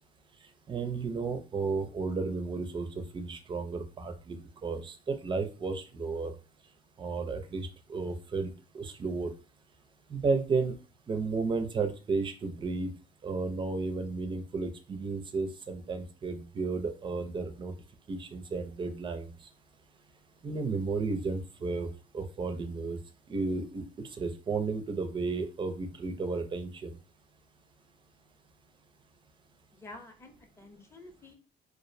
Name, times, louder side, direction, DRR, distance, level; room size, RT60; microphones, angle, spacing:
voice 1, 0.7-2.9 3.1-4.4 4.6-6.3 7.0-9.3 10.1-10.7 11.1-12.9 13.2-17.7 18.1-19.2 20.4-21.9 22.1-23.0 23.3-23.8 24.2-26.9, right 4 dB, 30° right, 8 dB, 0.4 m, -33 dB
voice 2, 29.7-31.4, left 2 dB, 15° left, 3 dB, 0.6 m, -49 dB
2.4 x 2.0 x 2.5 m, 0.34 s
cardioid pair, 110°, 17 cm